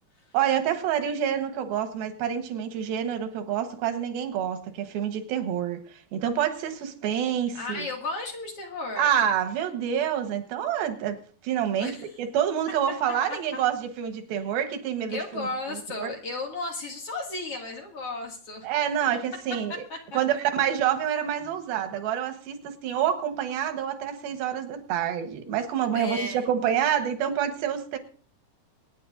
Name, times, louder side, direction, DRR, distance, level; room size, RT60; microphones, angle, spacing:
voice 1, 0.3-7.9 9.0-16.1 18.6-19.8 20.1-28.0, right 9 dB, 90° right, 3.1 m, -27 dB
voice 2, 7.5-9.2 11.8-12.1 13.3-13.6 15.1-18.7 19.9-20.2 25.9-26.5, left 2 dB, 45° left, 2.9 m, -34 dB
25.0 x 9.8 x 2.6 m
omnidirectional pair, 4.1 m